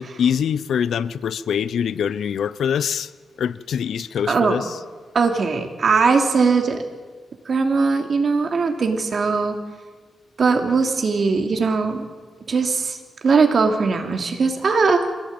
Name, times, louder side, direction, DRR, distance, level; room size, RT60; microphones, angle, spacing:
voice 1, 0.0-3.1 3.4-4.8, left 8 dB, 75° left, 0.7 m, -24 dB
voice 2, 5.1-6.8 7.4-9.6 10.4-12.1 12.5-13.0 13.2-15.1, right 4 dB, 50° right, 3.0 m, -19 dB
24.5 x 17.0 x 8.9 m
cardioid pair, 115°, 0 cm